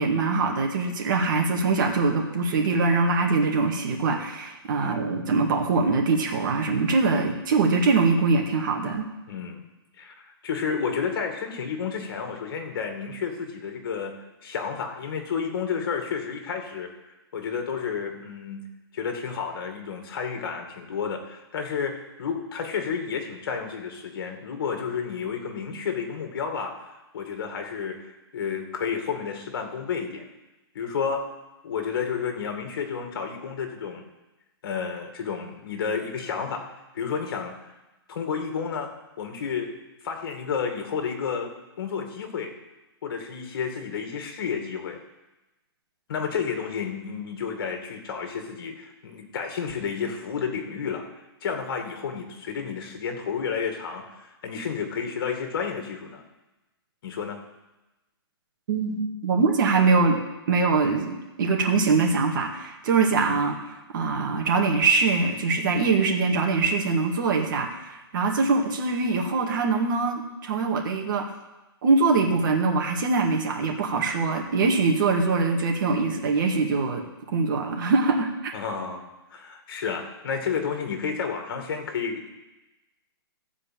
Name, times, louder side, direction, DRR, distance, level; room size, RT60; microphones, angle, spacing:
voice 1, 0.0-9.1 58.7-60.2 60.5-63.6 63.9-71.3 71.8-77.0 77.3-78.5, right 4 dB, 50° right, 1 dB, 2.1 m, -23 dB
voice 2, 4.8-5.1 9.3-9.6 10.0-16.9 17.3-18.7 18.9-30.3 30.7-31.2 31.6-34.0 34.6-36.6 36.9-37.5 38.1-38.9 39.2-39.7 40.0-42.5 43.0-45.0 46.1-51.1 51.4-56.2 57.0-57.4 63.1-63.4 78.5-82.3, left 6 dB, 55° left, 4 dB, 2.2 m, -31 dB
14.5 x 4.9 x 7.5 m, 1.0 s
hypercardioid pair, 155°, 13 cm